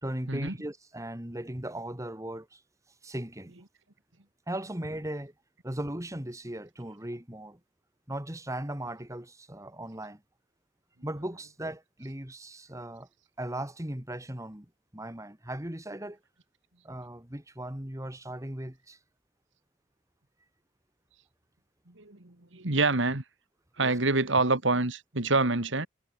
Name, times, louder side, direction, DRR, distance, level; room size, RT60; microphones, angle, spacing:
voice 1, 0.0-2.6 3.0-3.5 4.5-5.3 5.6-7.6 8.1-10.2 11.0-13.1 13.4-14.7 14.9-16.2 16.8-19.0 23.8-24.0, right 1 dB, 15° right, 2.3 m, -37 dB
voice 2, 21.9-23.2 23.8-25.9, right 3 dB, 70° right, 2.4 m, -27 dB
head